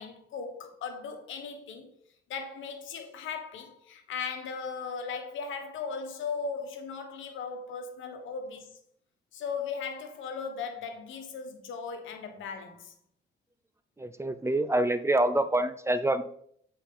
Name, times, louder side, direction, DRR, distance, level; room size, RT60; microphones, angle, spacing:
voice 1, 0.0-1.9 2.3-8.8 9.3-12.9, left 5 dB, 80° left, 1.2 m, -37 dB
voice 2, 14.0-16.2, right 1 dB, 15° right, 0.5 m, -26 dB
8.6 x 4.4 x 3.7 m
cardioid pair, 90°, 20 cm